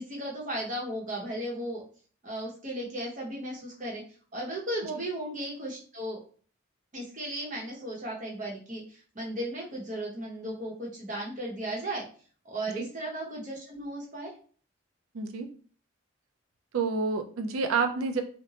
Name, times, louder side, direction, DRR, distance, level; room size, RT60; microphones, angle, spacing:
voice 1, 0.0-1.8 2.2-4.0 4.3-6.2 6.9-12.0 12.4-14.3, right 1 dB, 40° right, -3 dB, 0.8 m, -35 dB
voice 2, 15.1-15.5 16.7-18.2, right 4 dB, 90° right, 5 dB, 0.4 m, -28 dB
2.9 x 2.1 x 2.8 m, 0.43 s
head